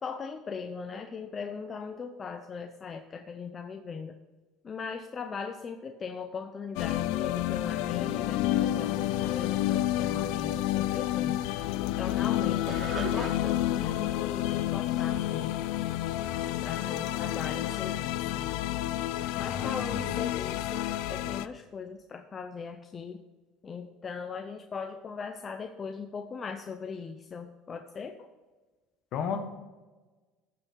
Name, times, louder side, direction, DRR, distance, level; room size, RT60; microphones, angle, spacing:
voice 1, 0.0-4.2 4.6-11.4 12.0-15.5 16.6-18.5 19.4-23.2 23.6-28.1, left 5 dB, 25° left, 6 dB, 0.6 m, -39 dB
sound 1, 6.8-21.5, left 14 dB, 75° left, 0.4 m, -30 dB
sound 2, 12.0-17.3, right 6 dB, 35° right, 0.8 m, -45 dB
voice 2, 19.5-20.2 29.1-29.4, left 6 dB, 50° left, 6 dB, 1.3 m, -34 dB
14.5 x 5.7 x 4.5 m, 1.3 s
cardioid pair, 145°, 0 cm